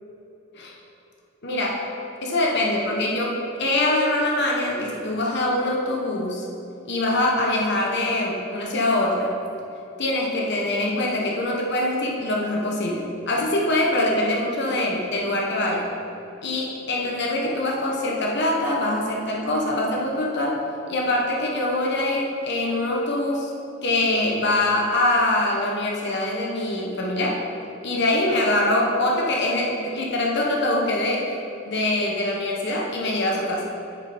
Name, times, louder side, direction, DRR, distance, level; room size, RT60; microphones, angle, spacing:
voice 1, 1.4-1.9 2.2-6.5 6.9-9.3 10.0-15.9 16.4-20.6 20.9-23.5 23.8-27.4 27.8-31.3 31.7-33.6, left 1 dB, 60° left, -1 dB, 1.3 m, -23 dB
9.7 x 6.8 x 4.5 m, 2.9 s
head